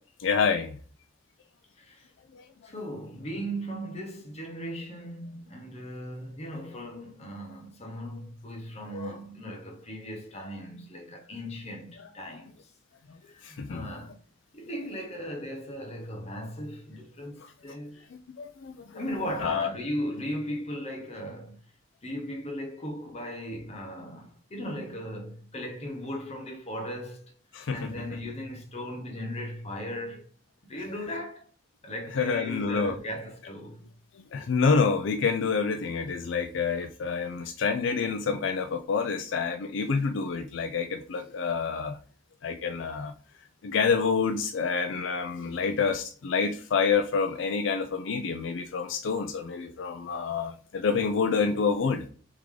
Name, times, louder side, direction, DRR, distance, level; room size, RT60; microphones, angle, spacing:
voice 1, 0.2-0.8 2.3-2.4 8.9-9.1 13.4-13.8 18.4-19.0 19.4-19.7 27.5-27.9 32.1-32.9 34.3-42.0 42.4-43.1 43.6-52.0, left 5 dB, 80° left, 0.4 m, -27 dB
voice 2, 1.8-2.1 2.6-12.7 13.3-14.2 14.5-18.0 18.9-21.6 22.0-27.3 27.7-30.2 30.6-31.5 31.8-33.9, equal, 35° left, 0.9 m, -37 dB
3.7 x 3.5 x 3.2 m
head